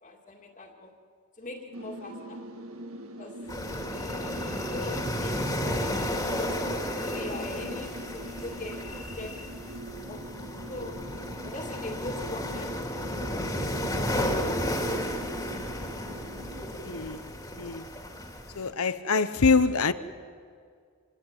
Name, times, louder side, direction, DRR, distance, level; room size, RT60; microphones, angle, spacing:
voice 1, 0.0-0.9 1.4-2.4 3.2-3.4 3.8-5.9 6.4-9.5 10.1-10.3 10.7-11.0 11.4-15.2 15.4-16.1, left 2 dB, 35° left, 2.3 m, -42 dB
sound 1, 1.7-16.7, right 1 dB, 70° right, 1.7 m, -43 dB
sound 2, 3.5-18.7, equal, 15° left, 2.5 m, -33 dB
sound 3, 3.6-9.8, left 2 dB, ahead, 2.2 m, -49 dB
voice 2, 14.2-14.6 16.8-17.9 18.5-19.9, left 4 dB, 85° left, 1.0 m, -26 dB
26.5 x 19.0 x 9.0 m
head